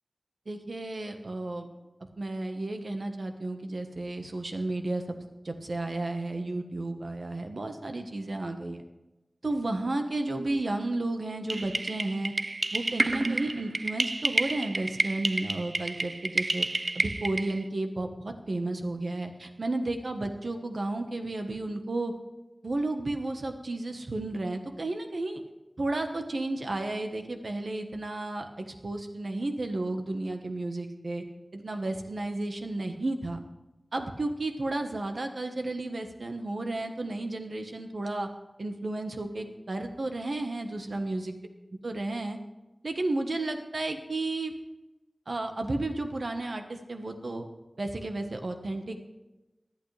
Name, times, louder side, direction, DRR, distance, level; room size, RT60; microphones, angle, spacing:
voice 1, 0.5-1.7 2.2-5.0 5.4-8.8 9.4-12.3 12.7-16.7 16.9-22.1 22.6-25.4 25.8-31.2 31.5-33.4 33.9-38.3 38.6-41.4 41.8-42.4 42.8-44.5 45.3-47.5 47.8-49.0, right 2 dB, 85° right, 5 dB, 1.2 m, -32 dB
sound 1, 11.5-17.6, right 2 dB, 60° right, 0.3 m, -30 dB
19.0 x 11.0 x 3.3 m, 1.0 s
wide cardioid pair, 55°, 0 cm